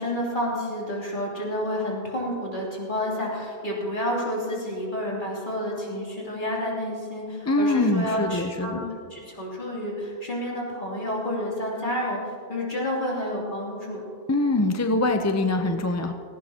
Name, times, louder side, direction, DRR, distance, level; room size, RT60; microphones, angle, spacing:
voice 1, 0.0-8.8 9.1-14.0, equal, 50° left, -4 dB, 3.2 m, -29 dB
voice 2, 7.5-8.8 14.3-16.1, left 2 dB, 20° left, 6 dB, 0.5 m, -23 dB
17.0 x 16.0 x 2.9 m, 2.3 s
omnidirectional pair, 1.1 m